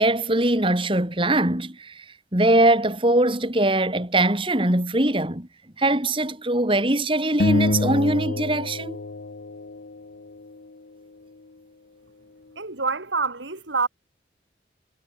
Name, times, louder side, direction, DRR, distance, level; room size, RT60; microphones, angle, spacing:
voice 1, 0.0-2.1 2.3-5.5 5.8-9.0, right 1 dB, 30° right, 2.6 m, -21 dB
sound 1, 7.4-10.0, left 3 dB, 70° left, 0.8 m, -26 dB
voice 2, 12.6-13.9, right 4 dB, 85° right, 3.2 m, -26 dB
head